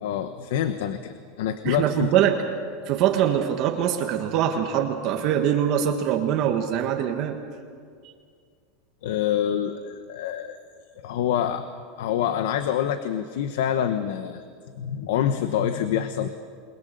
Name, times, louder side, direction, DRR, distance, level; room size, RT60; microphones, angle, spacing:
voice 1, 0.0-2.1 9.0-10.6 11.0-11.6 12.0-14.4 14.8-16.3, left 9 dB, 75° left, 9 dB, 1.1 m, -26 dB
voice 2, 1.6-2.4 2.9-7.4, right 9 dB, 35° right, 3 dB, 1.5 m, -23 dB
29.0 x 21.5 x 6.8 m, 2.1 s
supercardioid pair, 175°, 0 cm